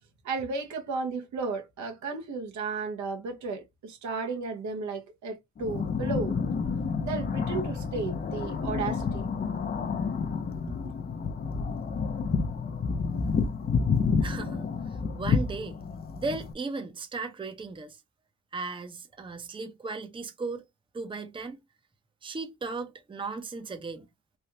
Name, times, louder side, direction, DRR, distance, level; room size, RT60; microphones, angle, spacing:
voice 1, 0.2-6.3 7.0-9.3, right 4 dB, 70° right, 1.0 m, -34 dB
sound 1, 5.6-16.5, left 5 dB, 30° left, 0.6 m, -29 dB
voice 2, 14.2-15.8 16.2-18.0 18.5-20.6 20.9-21.6 22.2-24.1, right 3 dB, 15° right, 0.7 m, -36 dB
3.3 x 2.3 x 2.8 m
cardioid pair, 90°, 30 cm